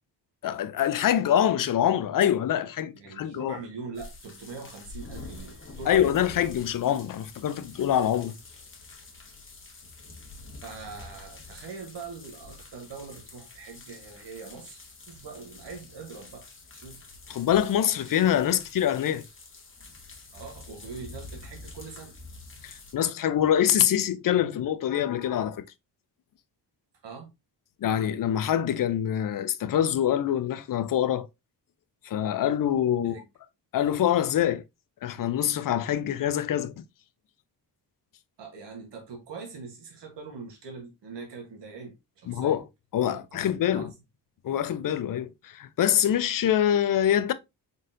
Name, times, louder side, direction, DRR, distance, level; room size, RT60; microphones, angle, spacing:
voice 1, 0.4-3.6 5.9-8.4 17.3-19.2 22.6-25.6 27.8-31.3 32.0-33.2 33.7-34.6 35.0-36.7 42.3-42.6 42.9-43.9 44.4-47.3, left 10 dB, 55° left, 0.5 m, -25 dB
voice 2, 2.9-6.3 10.6-16.5 16.7-17.0 20.3-22.1 27.0-27.3 33.0-33.2 38.4-42.6 43.0-43.9, right 5 dB, 90° right, 1.3 m, -42 dB
sound 1, 3.9-22.9, left 3 dB, 30° left, 1.1 m, -46 dB
3.9 x 3.8 x 2.6 m
cardioid pair, 85°, 41 cm